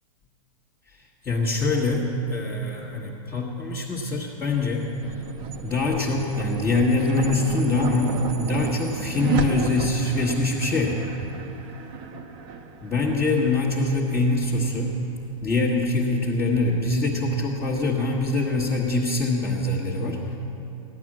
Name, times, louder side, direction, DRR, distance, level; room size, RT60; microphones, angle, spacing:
voice 1, 0.9-5.2 5.6-11.0 12.8-15.0 15.4-20.4, left 2 dB, 15° left, -5 dB, 1.3 m, -24 dB
sound 1, 4.3-14.8, right 6 dB, 25° right, 0.9 m, -33 dB
15.0 x 11.0 x 7.5 m, 2.9 s
hypercardioid pair, 160°, 18 cm